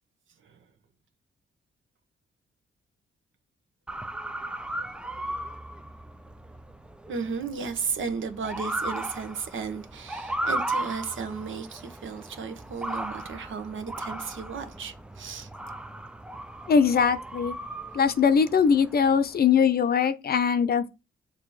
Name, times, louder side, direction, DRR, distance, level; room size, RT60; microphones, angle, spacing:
Motor vehicle (road) / Siren, 3.9-19.4, right 1 dB, 5° right, 0.4 m, -36 dB
voice 1, 7.1-15.5, right 5 dB, 75° right, 1.1 m, -34 dB
voice 2, 16.7-17.6 17.9-20.9, left 6 dB, 50° left, 0.6 m, -21 dB
6.7 x 2.9 x 4.8 m
cardioid pair, 115°, 20 cm